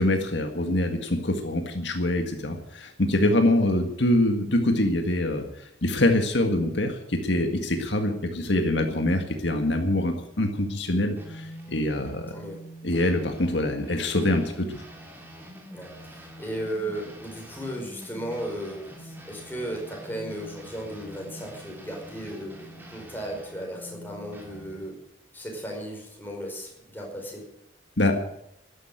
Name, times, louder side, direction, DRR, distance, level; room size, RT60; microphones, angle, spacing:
voice 1, 0.0-12.4 12.8-14.8 28.0-28.1, left 1 dB, 70° left, 5 dB, 1.8 m, -24 dB
sound 1, 11.2-24.9, equal, 10° right, 3.0 m, -45 dB
voice 2, 15.7-22.6 22.9-24.9 25.3-27.4, right 1 dB, 10° left, 0 dB, 5.2 m, -35 dB
13.0 x 11.0 x 9.0 m, 0.78 s
head